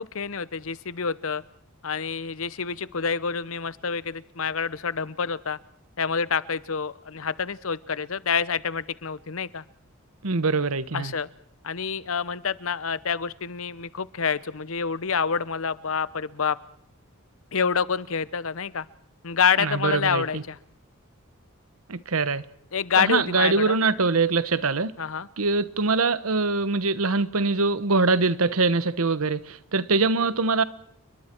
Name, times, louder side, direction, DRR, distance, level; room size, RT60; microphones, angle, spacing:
voice 1, 0.0-1.4 1.8-5.6 6.0-9.6 10.9-11.3 11.6-16.6 17.5-18.8 19.2-20.6 22.7-23.8 25.0-25.3, left 6 dB, 65° left, 0.8 m, -27 dB
voice 2, 10.2-11.1 19.6-20.4 21.9-22.4 23.0-24.9 25.4-30.6, right 3 dB, 80° right, 1.1 m, -23 dB
29.5 x 22.5 x 4.5 m
head